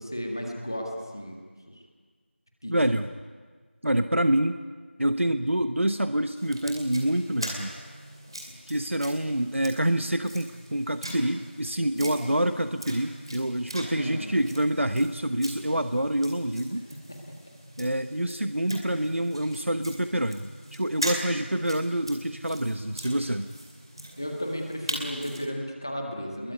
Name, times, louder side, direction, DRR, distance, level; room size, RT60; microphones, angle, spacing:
voice 1, 0.0-1.4 1.7-1.8 2.6-2.7 11.9-12.1 13.9-14.3 16.7-17.4 24.2-26.5, equal, 20° left, 1 dB, 1.8 m, -34 dB
voice 2, 2.7-3.1 3.8-4.6 5.0-7.7 8.7-16.9 17.8-23.5, right 1 dB, 85° right, 9 dB, 1.2 m, -27 dB
sound 1, 6.4-25.5, right 1 dB, 25° right, 2.6 m, -41 dB
24.0 x 21.5 x 9.6 m, 1.5 s
figure-of-eight pair, 180°, 7 cm